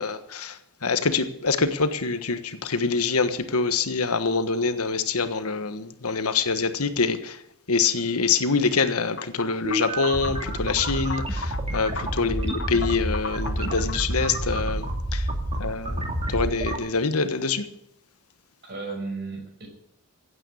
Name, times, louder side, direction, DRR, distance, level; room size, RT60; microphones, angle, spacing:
voice 1, 0.0-7.4 7.7-15.3 15.6-16.0 16.3-17.7, left 4 dB, 85° left, 1.3 m, -25 dB
sound 1, 9.2-14.3, left 4 dB, 55° left, 1.0 m, -38 dB
sound 2, 9.6-16.8, right 1 dB, 25° right, 2.5 m, -29 dB
voice 2, 12.2-12.5 15.5-15.6 18.6-19.7, right 3 dB, 50° right, 5.9 m, -35 dB
16.0 x 9.0 x 8.6 m
head